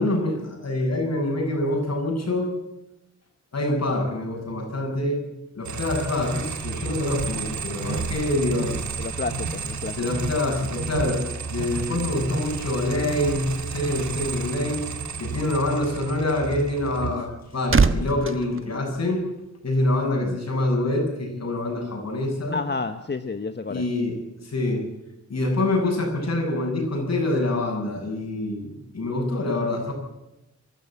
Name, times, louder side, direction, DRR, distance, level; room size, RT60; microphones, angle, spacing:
voice 1, 0.0-2.5 3.5-8.7 10.0-11.2 11.5-14.9 15.2-19.2 19.6-22.6 23.7-24.9 25.3-29.9, left 1 dB, 60° left, 2 dB, 7.5 m, -26 dB
sound 1, 5.6-17.2, right 5 dB, 75° right, 2.2 m, -31 dB
voice 2, 9.0-10.0 20.1-20.4 22.5-23.9, left 4 dB, 35° left, 9 dB, 1.1 m, -30 dB
sound 2, 17.2-19.6 19.9-20.2, right 4 dB, 45° right, 1.3 m, -25 dB
23.0 x 13.0 x 8.8 m, 0.92 s
cardioid pair, 75°, 29 cm